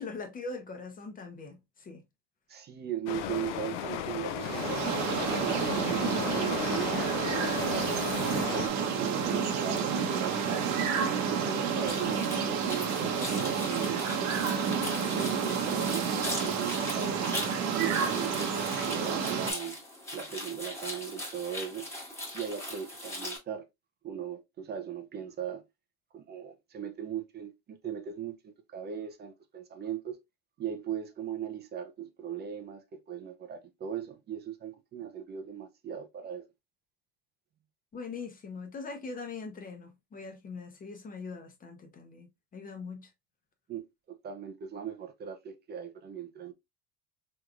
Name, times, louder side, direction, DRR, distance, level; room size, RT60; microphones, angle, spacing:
voice 1, 0.0-2.0 37.9-43.1, left 4 dB, 25° left, 1.0 m, -41 dB
voice 2, 2.5-7.9 8.5-10.9 11.3-12.2 12.4-14.0 14.5-17.3 17.7-19.8 20.1-21.9 22.3-23.6 24.0-25.6 26.1-30.2 30.6-36.4 43.7-46.5, right 8 dB, 30° right, 0.6 m, -38 dB
sound 1, 3.1-8.7, left 10 dB, 85° left, 0.6 m, -35 dB
sound 2, 4.4-19.5, right 6 dB, 50° right, 1.0 m, -30 dB
sound 3, 11.9-23.4, left 1 dB, 10° left, 1.5 m, -40 dB
3.5 x 3.1 x 2.4 m
supercardioid pair, 110°, 35 cm